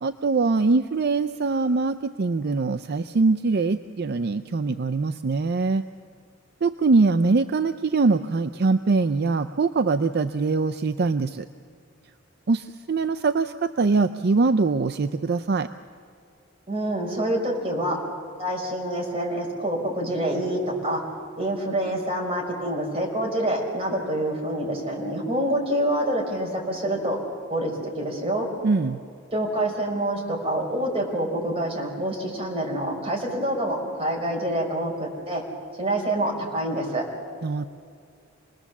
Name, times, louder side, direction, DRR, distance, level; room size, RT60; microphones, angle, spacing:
voice 1, 0.0-5.8 6.6-11.5 12.5-15.7 28.6-29.0 37.4-37.6, right 3 dB, 55° right, 11 dB, 0.5 m, -23 dB
voice 2, 16.7-18.0 18.4-21.0 21.4-27.2 27.5-28.5 29.3-35.4 35.8-37.0, right 1 dB, 30° right, 0 dB, 4.8 m, -26 dB
27.0 x 20.0 x 7.2 m, 2.4 s
head